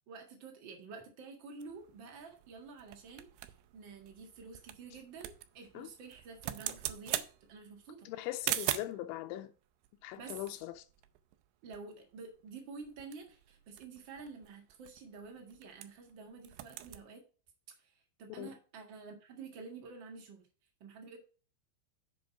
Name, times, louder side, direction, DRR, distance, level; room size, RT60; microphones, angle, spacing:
voice 1, 0.1-8.1 10.2-10.4 11.6-17.2 17.8-17.9 18.2-20.5 20.8-21.2, right 4 dB, 55° right, 1.3 m, -49 dB
sound 1, 1.6-9.1 9.8-11.5 11.7-11.8 12.1-12.4 12.8-16.1 16.4-17.0, right 14 dB, 85° right, 2.6 m, -42 dB
voice 2, 8.1-9.5 10.0-10.9 18.4-18.5, left 14 dB, 85° left, 2.9 m, -40 dB
7.7 x 5.3 x 5.8 m
omnidirectional pair, 5.3 m